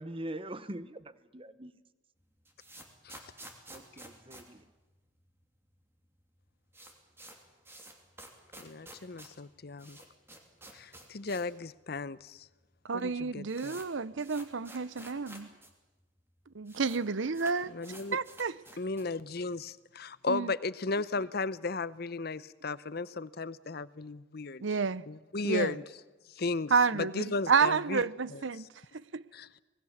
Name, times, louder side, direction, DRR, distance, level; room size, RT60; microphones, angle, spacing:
voice 1, 0.0-1.8 3.7-4.7, right 1 dB, 25° right, 0.9 m, -43 dB
sound 1, 2.2-5.4 5.7-5.8 6.0-6.1 6.4-11.6 11.9-12.0 12.7-12.8 13.0-15.7 16.0-16.1 16.3-17.0 17.3-19.2, right 1 dB, 10° right, 2.9 m, -51 dB
voice 2, 8.6-10.0 10.7-12.5 12.9-13.8 17.7-18.2 18.8-24.6 25.1-25.8 26.4-28.0 28.3-28.4 29.3-29.5, left 3 dB, 50° left, 0.7 m, -35 dB
voice 3, 12.9-15.5 16.5-17.7 18.1-18.5 20.3-20.5 24.6-25.0 25.4-25.7 26.7-28.7 29.1-29.2, right 5 dB, 70° right, 0.7 m, -30 dB
26.0 x 19.5 x 7.3 m
head